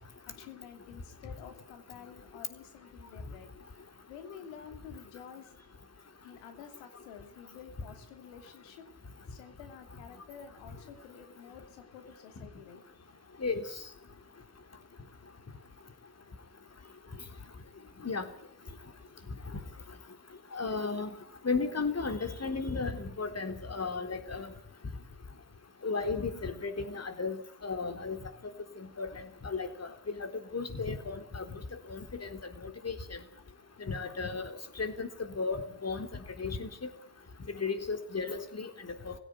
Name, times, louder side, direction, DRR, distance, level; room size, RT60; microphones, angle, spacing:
voice 1, 0.3-3.5 4.0-5.5 6.2-8.9 9.3-12.8, left 8 dB, 75° left, 7 dB, 2.9 m, -50 dB
voice 2, 20.5-21.1 21.4-24.5 25.8-28.2 28.8-29.1 29.4-29.9 30.2-31.4 31.7-32.3 32.6-33.2 33.8-34.5 34.8-35.1 35.4-36.1 36.4-36.9 37.5-39.1, left 4 dB, 35° left, 7 dB, 3.8 m, -34 dB
18.5 x 16.5 x 9.4 m, 0.63 s
hypercardioid pair, 45°, 45 cm